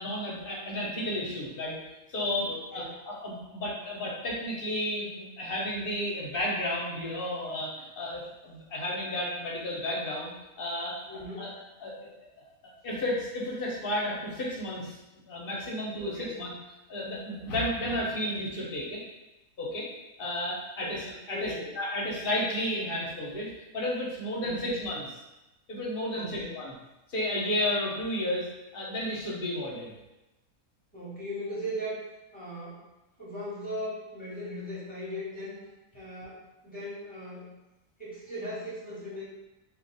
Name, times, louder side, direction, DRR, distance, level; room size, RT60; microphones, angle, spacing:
voice 1, 0.0-1.8 2.1-10.3 10.6-11.0 11.4-11.5 11.8-12.1 12.8-15.0 15.3-16.5 16.9-19.0 19.6-19.9 20.2-25.1 25.7-26.7 27.1-29.9, left 1 dB, 45° left, -4 dB, 0.9 m, -32 dB
voice 2, 2.4-2.9 11.0-11.5 15.9-16.4 20.8-21.0 21.3-21.7 24.4-24.7 26.1-26.6 30.9-32.0 32.3-32.8 33.2-35.6 35.9-37.5 38.0-39.2, equal, 5° left, -10 dB, 1.1 m, -38 dB
2.7 x 2.5 x 4.0 m, 0.98 s
omnidirectional pair, 1.5 m